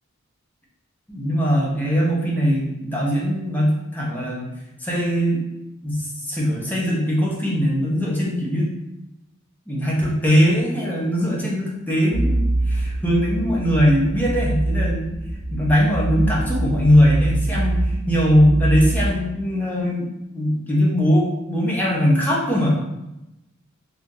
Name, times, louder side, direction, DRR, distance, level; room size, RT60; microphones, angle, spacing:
voice 1, 1.1-4.5 4.8-5.4 5.8-8.7 9.7-15.1 15.5-22.7, equal, 10° left, -4 dB, 0.6 m, -20 dB
sound 1, 12.1-19.2, right 1 dB, 70° right, 0.7 m, -24 dB
2.8 x 2.4 x 3.7 m, 0.93 s
head